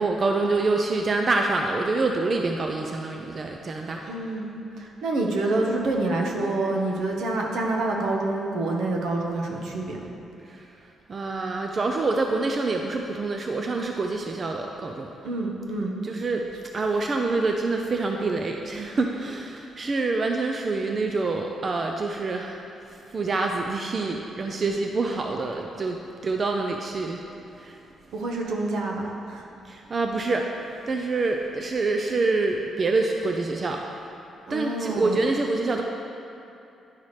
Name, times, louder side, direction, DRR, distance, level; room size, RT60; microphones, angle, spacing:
voice 1, 0.0-4.0 10.5-10.6 11.1-15.1 16.0-16.4 16.7-22.6 22.9-26.0 26.2-27.2 27.6-27.8 29.7-33.8 34.5-35.8, right 3 dB, 40° right, 2 dB, 0.5 m, -26 dB
voice 2, 4.0-4.5 4.8-10.0 15.2-15.9 28.1-29.5 34.5-35.2, right 2 dB, 80° right, 0 dB, 1.0 m, -27 dB
10.0 x 5.6 x 3.2 m, 2.7 s
cardioid pair, 100°, 0 cm